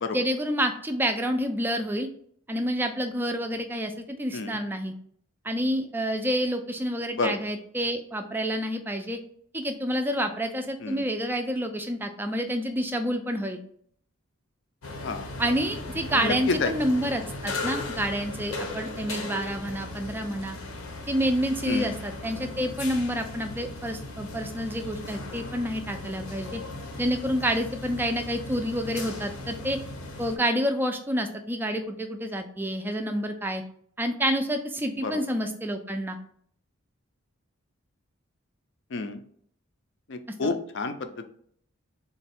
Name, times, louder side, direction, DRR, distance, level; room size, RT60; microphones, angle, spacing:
voice 1, 0.1-2.1 2.5-4.9 5.4-9.2 9.5-13.6 15.4-20.6 21.1-26.6 27.0-29.8 30.2-33.6 34.0-36.2 40.3-40.5, equal, 10° right, 6 dB, 0.3 m, -28 dB
sound 1, 14.8-30.4, left 2 dB, 75° left, 0.8 m, -37 dB
voice 2, 16.1-16.7 21.7-21.9 35.0-35.1 38.9-39.2 40.1-41.3, left 3 dB, 55° left, 8 dB, 0.4 m, -29 dB
3.9 x 2.3 x 4.2 m, 0.63 s
head